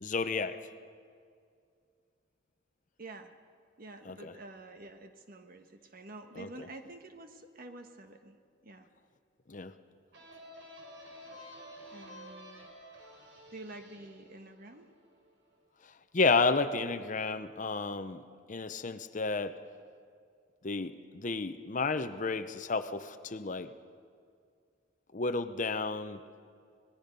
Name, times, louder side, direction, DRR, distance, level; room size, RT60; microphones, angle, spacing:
voice 1, 0.0-0.6 4.1-4.3 6.4-6.7 9.5-9.7 16.1-18.2 18.5-19.6 20.6-23.7 25.1-26.2, left 4 dB, 45° left, 10 dB, 0.8 m, -31 dB
voice 2, 3.0-3.3 3.8-8.4 8.6-8.9 11.9-12.7 13.5-14.9 16.8-17.3, right 2 dB, 50° right, 7 dB, 1.4 m, -49 dB
sound 1, 10.1-15.6, equal, 80° right, 4.9 m, -51 dB
26.0 x 19.5 x 5.3 m, 2.2 s
head